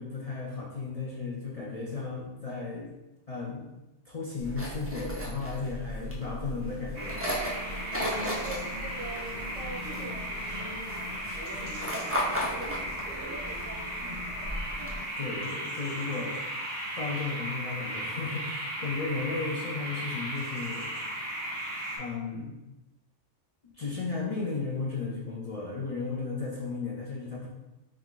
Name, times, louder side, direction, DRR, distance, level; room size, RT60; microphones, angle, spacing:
voice 1, 0.0-2.9 3.3-3.7 4.1-7.3 15.2-16.4 17.0-20.9 22.0-22.5 23.7-27.5, left 4 dB, 45° left, -4 dB, 0.5 m, -34 dB
sound 1, 4.4-15.0, equal, 15° right, 0.4 m, -36 dB
sound 2, 6.9-22.0, equal, 50° right, 1.9 m, -36 dB
voice 2, 8.0-11.1 11.5-14.0, right 1 dB, 85° right, -6 dB, 1.2 m, -44 dB
4.2 x 2.4 x 3.7 m, 0.98 s
omnidirectional pair, 1.3 m